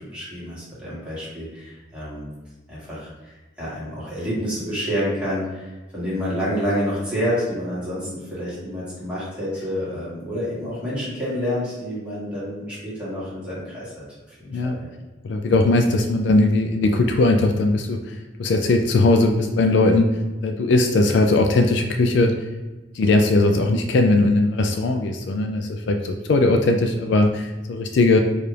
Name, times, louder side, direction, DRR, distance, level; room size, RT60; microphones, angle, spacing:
voice 1, 0.0-2.3 2.7-13.9 14.3-14.9, equal, 5° right, -9 dB, 1.4 m, -28 dB
voice 2, 15.2-20.1 20.4-22.3 22.9-28.2, left 2 dB, 60° left, 4 dB, 0.3 m, -19 dB
4.7 x 2.5 x 3.2 m, 1.2 s
head